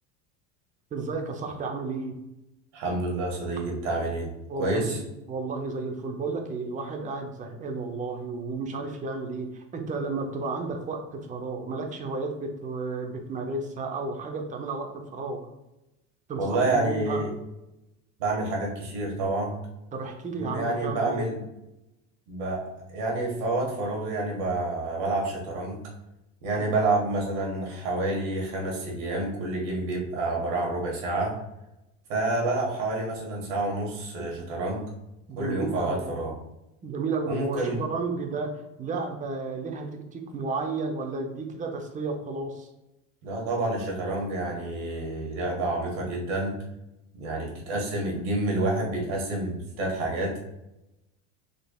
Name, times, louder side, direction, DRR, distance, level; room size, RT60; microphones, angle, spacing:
voice 1, 0.9-2.2 4.5-5.0 5.3-15.5 16.3-17.2 19.9-21.2 34.2-34.3 35.3-36.1 36.8-42.7, right 3 dB, 20° right, 3 dB, 0.6 m, -32 dB
voice 2, 2.7-4.3 4.6-5.0 16.4-17.3 18.2-19.6 20.4-21.4 22.3-25.8 26.4-31.4 32.1-34.9 35.4-36.3 37.3-37.8 43.2-46.6 47.1-50.4, right 2 dB, 75° right, -1 dB, 1.5 m, -28 dB
3.8 x 3.3 x 2.3 m, 0.93 s
supercardioid pair, 115°, 37 cm